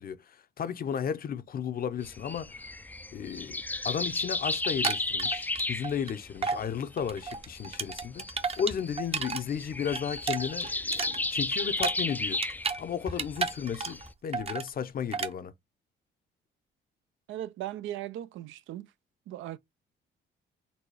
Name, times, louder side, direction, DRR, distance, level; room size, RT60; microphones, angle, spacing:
voice 1, 0.0-2.6 3.1-8.2 8.6-12.4 12.8-15.5, left 7 dB, 50° left, 0.6 m, -34 dB
sound 1, 2.0-14.1, left 2 dB, 10° left, 0.3 m, -34 dB
sound 2, 4.6-6.1 6.4-6.6 7.0-9.4 9.7-12.8 13.1-14.1 14.3-14.7 15.1-15.3, right 5 dB, 30° right, 0.6 m, -32 dB
voice 2, 17.3-18.9 19.3-19.6, right 13 dB, 80° right, 0.4 m, -38 dB
4.1 x 2.2 x 4.6 m
cardioid pair, 90°, 20 cm